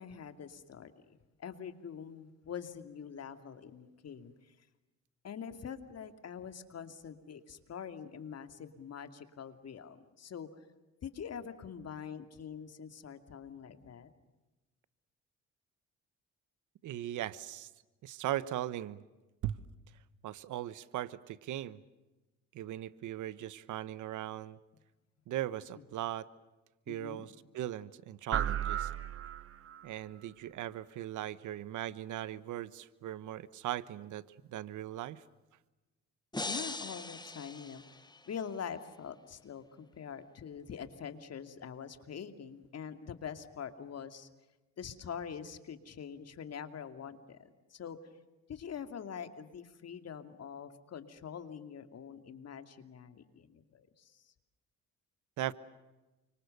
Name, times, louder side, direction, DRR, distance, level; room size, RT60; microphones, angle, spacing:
voice 1, 0.0-4.5 5.2-10.5 11.0-14.1 26.9-27.3 36.4-44.3 44.8-48.0 48.5-54.3, left 7 dB, 55° left, 9 dB, 2.6 m, -45 dB
voice 2, 16.8-17.7 18.0-19.0 19.4-19.6 20.2-21.8 22.5-24.6 25.3-26.3 26.9-28.9 29.8-35.2 55.4-55.5, right 13 dB, 80° right, 17 dB, 1.2 m, -39 dB
sound 1, 28.3-29.9, right 9 dB, 50° right, 1.1 m, -34 dB
sound 2, 36.3-38.5, left 2 dB, 15° left, 1.5 m, -41 dB
29.5 x 25.5 x 6.8 m, 1.1 s
cardioid pair, 90°, 30 cm